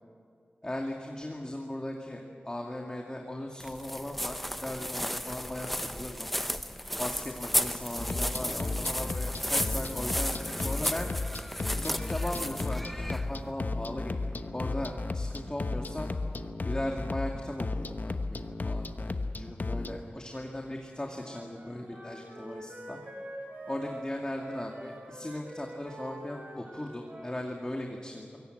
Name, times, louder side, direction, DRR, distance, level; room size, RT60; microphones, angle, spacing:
voice 1, 0.6-6.3 7.0-11.1 11.8-12.8 13.1-16.1 16.7-23.0 23.6-28.4, left 1 dB, 20° left, 1 dB, 2.2 m, -38 dB
sound 1, 3.6-13.5, equal, 5° left, 0.8 m, -34 dB
sound 2, 8.0-20.0, left 3 dB, 50° left, 1.1 m, -34 dB
Wind instrument woodwind instrument, 21.1-27.5, right 1 dB, 40° right, 6.2 m, -45 dB
24.0 x 17.5 x 7.9 m, 2.2 s
cardioid pair, 55°, 4 cm